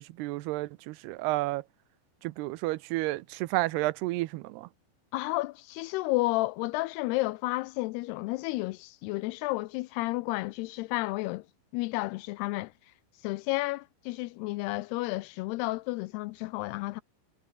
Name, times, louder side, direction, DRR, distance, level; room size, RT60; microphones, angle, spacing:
voice 1, 0.0-1.6 2.2-4.7, right 19 dB, 80° right, 2.4 m, -31 dB
voice 2, 5.1-11.4 11.7-12.7 13.2-17.0, left 20 dB, 90° left, 2.3 m, -31 dB
omnidirectional pair, 5.4 m